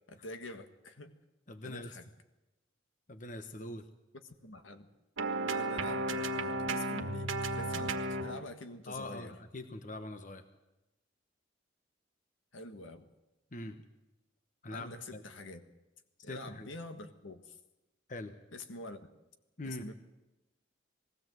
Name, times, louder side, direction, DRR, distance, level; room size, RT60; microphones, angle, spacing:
voice 1, 0.1-1.2 1.6-2.0 4.2-4.9 5.5-7.9 8.2-9.3 12.5-13.1 14.7-15.6 16.2-17.6 18.5-19.1 19.6-19.9, left 2 dB, 80° left, 7 dB, 1.6 m, -46 dB
voice 2, 1.5-2.0 3.1-3.8 8.9-10.4 13.5-13.8 14.6-15.2 16.2-16.7 18.1-18.3 19.6-19.8, left 1 dB, 40° left, 8 dB, 1.1 m, -43 dB
sound 1, 5.2-8.4, right 2 dB, 85° right, 1.5 m, -34 dB
20.5 x 16.5 x 7.8 m, 1.0 s
head